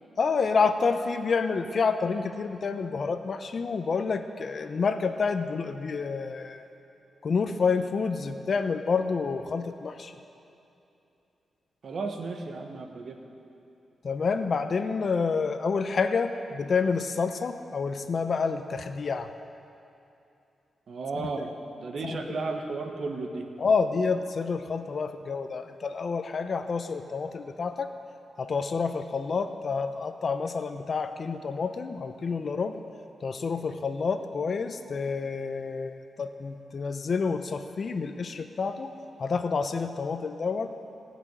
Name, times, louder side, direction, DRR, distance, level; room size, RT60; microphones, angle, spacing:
voice 1, 0.2-6.7 7.2-10.1 14.0-19.3 22.0-22.2 23.6-27.9 28.4-32.8 33.2-38.9 39.2-40.7, left 5 dB, 55° left, 8 dB, 0.7 m, -28 dB
voice 2, 11.8-13.2 20.9-23.5, right 3 dB, 65° right, 4 dB, 1.4 m, -34 dB
17.5 x 6.2 x 9.2 m, 2.8 s
cardioid pair, 85°, 0 cm